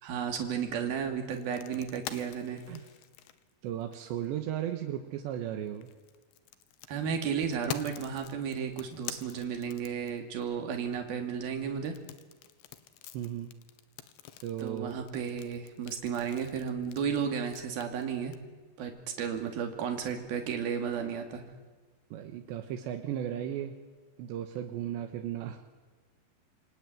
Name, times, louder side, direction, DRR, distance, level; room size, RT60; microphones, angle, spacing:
voice 1, 0.0-2.6 6.9-11.9 14.6-18.3 18.8-21.4, right 7 dB, 60° right, 4 dB, 4.3 m, -33 dB
sound 1, 1.3-4.3 5.7-10.4 11.9-18.4, left 12 dB, 80° left, 3.4 m, -45 dB
voice 2, 3.6-5.9 13.1-13.5 14.4-15.0 22.1-23.8 24.2-25.7, right 10 dB, 80° right, 5 dB, 3.4 m, -35 dB
27.5 x 23.0 x 9.3 m, 1.3 s
omnidirectional pair, 5.2 m